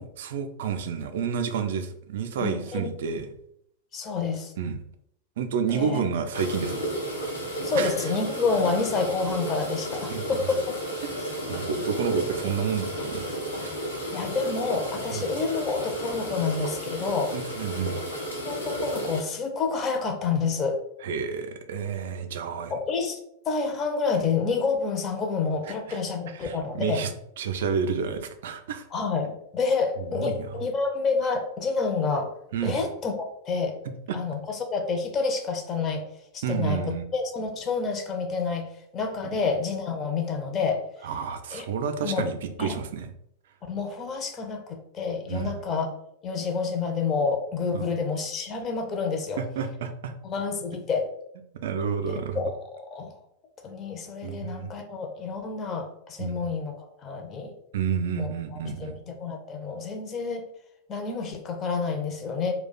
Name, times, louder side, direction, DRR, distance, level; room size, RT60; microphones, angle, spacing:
voice 1, 0.0-3.3 4.6-4.8 5.4-6.8 7.7-7.9 10.1-10.3 11.2-13.2 13.5-13.7 15.1-15.3 17.3-18.0 21.0-22.7 25.7-26.0 26.4-27.1 27.4-28.9 30.0-30.5 32.5-32.8 34.1-34.2 36.4-37.0 39.2-39.4 41.0-43.1 45.3-45.5 47.7-47.8 49.4-50.1 51.6-52.4 54.2-54.7 56.2-56.4 57.7-59.0, right 6 dB, 55° right, 8 dB, 0.3 m, -30 dB
voice 2, 2.4-2.9 3.9-4.5 5.7-6.0 7.6-11.0 14.1-17.3 18.4-20.8 22.7-23.2 23.5-27.0 28.9-32.3 32.6-33.8 34.1-36.1 36.3-40.8 41.5-41.6 42.0-42.3 42.6-42.7 43.7-45.9 46.2-49.4 50.2-51.1 52.1-53.2 53.6-57.5 58.1-58.9 59.2-60.4 60.9-62.5, left 4 dB, 30° left, 4 dB, 0.5 m, -28 dB
sound 1, 6.3-19.2, right 1 dB, 85° left, 0.9 m, -33 dB
2.4 x 2.2 x 3.9 m, 0.74 s
figure-of-eight pair, 90°, 0 cm